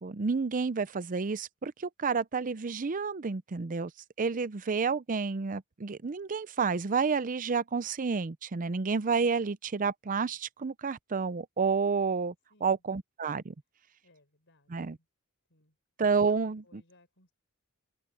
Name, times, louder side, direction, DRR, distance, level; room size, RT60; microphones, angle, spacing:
voice 1, 0.0-3.9 4.2-12.3 12.6-13.5 14.7-15.0 16.0-16.8, right 5 dB, 40° right, 0.5 m, -30 dB
voice 2, 12.5-12.8 14.0-15.1 15.5-15.8 16.6-17.3, left 2 dB, 60° left, 5.5 m, -65 dB
open air
head